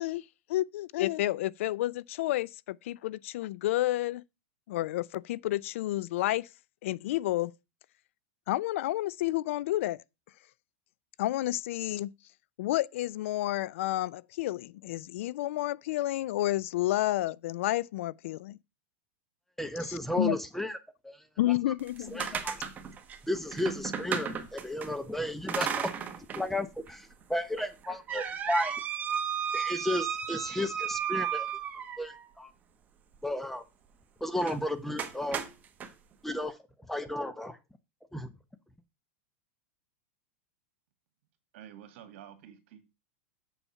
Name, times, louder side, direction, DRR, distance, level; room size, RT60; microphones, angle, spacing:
voice 1, 0.0-4.2 4.7-6.5 6.8-7.5 8.5-10.0 11.2-12.1 12.6-18.6 19.8-20.4 21.4-22.3, left 15 dB, 70° left, 0.4 m, -30 dB
voice 2, 19.6-20.8 21.0-21.2 22.1-22.6 23.3-25.9 26.3-28.7 29.5-31.5 32.0-32.5 33.2-33.6 34.2-35.4 36.2-36.6 36.9-37.6 38.1-38.3, left 1 dB, 5° left, 0.8 m, -33 dB
sound 1, 21.8-24.9 25.5-26.5 26.9-27.0 27.6-32.2 34.4-34.6 35.0-35.9, right 8 dB, 20° right, 1.2 m, -34 dB
voice 3, 41.5-42.8, right 10 dB, 60° right, 2.1 m, -49 dB
7.1 x 7.0 x 5.6 m
supercardioid pair, 145°, 7 cm